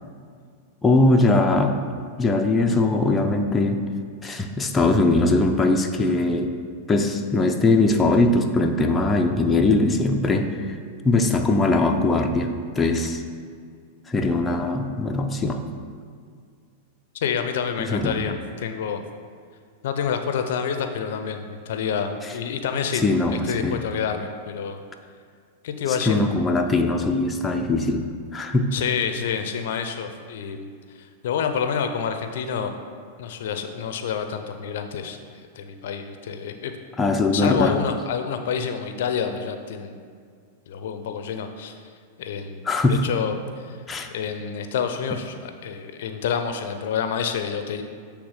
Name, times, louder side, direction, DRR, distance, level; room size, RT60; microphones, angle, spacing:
voice 1, 0.8-1.8 2.2-3.8 4.2-6.5 6.9-10.7 11.0-13.2 14.1-15.7 17.8-18.2 23.0-23.8 26.0-28.7 37.0-37.8 42.7-43.0 43.9-44.1, left 2 dB, 15° left, 3 dB, 0.5 m, -21 dB
voice 2, 17.1-19.0 19.8-23.0 23.3-24.8 25.6-26.2 28.7-32.7 33.2-36.7 37.3-40.0 40.7-41.8 42.2-43.8 44.1-47.8, left 7 dB, 70° left, 7 dB, 0.5 m, -28 dB
7.9 x 3.4 x 4.9 m, 2.1 s
hypercardioid pair, 115°, 0 cm